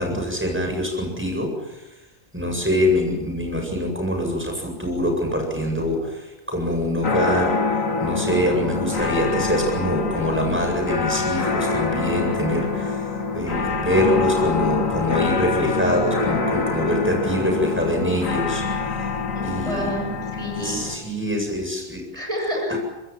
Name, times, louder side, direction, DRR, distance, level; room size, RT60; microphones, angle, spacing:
voice 1, 0.0-1.8 2.3-7.6 8.0-13.1 13.3-18.6 18.9-19.0 19.4-19.9 20.5-22.0 22.7-22.8, equal, 10° right, 2 dB, 7.9 m, -24 dB
sound 1, 7.0-21.0, left 4 dB, 80° left, 2.4 m, -25 dB
voice 2, 19.3-20.8 22.1-22.8, left 1 dB, 25° right, 1 dB, 7.8 m, -29 dB
25.5 x 21.0 x 7.4 m, 1.0 s
omnidirectional pair, 1.4 m